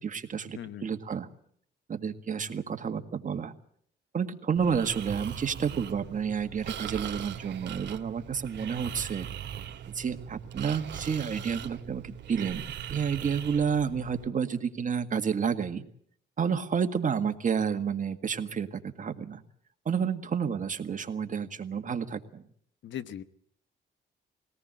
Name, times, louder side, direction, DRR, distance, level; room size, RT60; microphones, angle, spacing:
voice 1, 0.0-1.3 1.9-3.5 4.1-9.3 9.9-15.8 16.4-19.4 19.9-22.4, right 6 dB, 40° right, 7 dB, 1.7 m, -30 dB
voice 2, 0.5-0.9 22.8-23.2, left 10 dB, 70° left, 13 dB, 1.2 m, -38 dB
Breathing, 4.6-14.3, right 9 dB, 65° right, 2.1 m, -40 dB
21.5 x 18.0 x 7.7 m, 0.65 s
cardioid pair, 90°, 20 cm